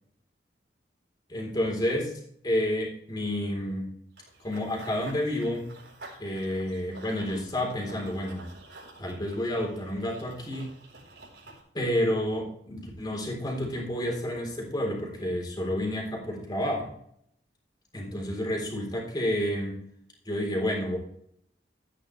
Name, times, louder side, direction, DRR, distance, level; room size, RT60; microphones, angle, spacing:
voice 1, 1.3-3.9 4.4-5.7 6.2-8.5 9.0-10.7 11.7-16.9 17.9-19.8 20.2-21.0, left 1 dB, 25° left, -1 dB, 3.9 m, -30 dB
Run / Bird vocalization bird call bird song, 4.2-11.6, right 2 dB, 80° right, 4.4 m, -50 dB
13.5 x 9.9 x 3.3 m, 0.70 s
head